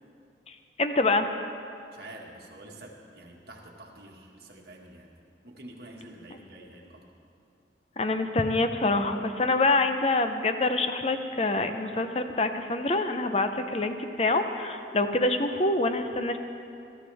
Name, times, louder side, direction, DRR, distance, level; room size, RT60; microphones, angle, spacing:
voice 1, 0.5-1.3 8.0-16.4, left 2 dB, 35° left, 7 dB, 0.7 m, -26 dB
voice 2, 1.9-5.1 5.4-7.1, right 1 dB, 55° right, -1 dB, 1.8 m, -47 dB
19.0 x 13.5 x 3.5 m, 2.6 s
head